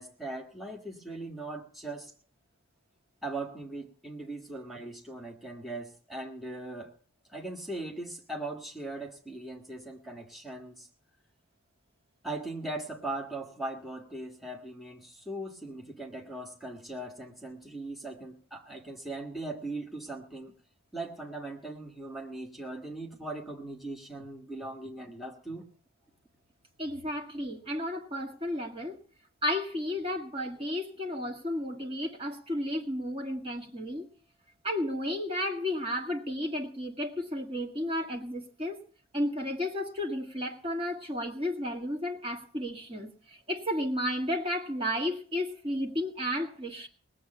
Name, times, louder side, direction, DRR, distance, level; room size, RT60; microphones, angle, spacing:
voice 1, 0.0-2.1 3.2-6.9 7.3-10.9 12.2-20.5 20.9-25.6 27.4-27.5, right 2 dB, ahead, -2 dB, 1.6 m, -39 dB
voice 2, 26.8-29.0 29.4-34.1 34.6-38.8 39.1-46.9, left 1 dB, 25° right, 1 dB, 1.9 m, -33 dB
19.5 x 7.7 x 6.7 m, 0.43 s
head